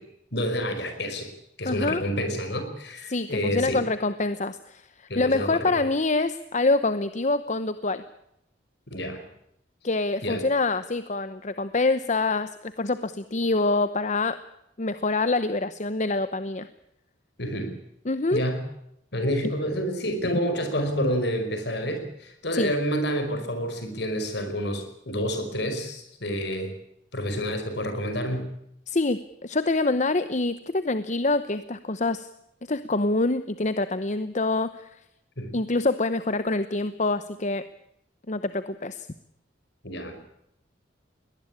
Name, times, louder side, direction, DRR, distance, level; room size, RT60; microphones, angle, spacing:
voice 1, 0.3-1.3 1.6-3.8 5.1-5.7 8.9-9.2 10.2-10.4 17.4-17.7 18.3-18.6 19.1-26.7 27.1-28.5 35.4-35.5 39.8-40.2, equal, 60° left, 7 dB, 5.2 m, -28 dB
voice 2, 1.6-2.0 3.1-8.0 9.8-14.4 14.8-16.7 18.1-18.4 22.5-22.7 28.9-32.3 32.7-34.9 35.5-37.6 38.3-39.1, left 3 dB, 40° left, 12 dB, 0.8 m, -26 dB
22.5 x 19.0 x 8.6 m, 0.79 s
head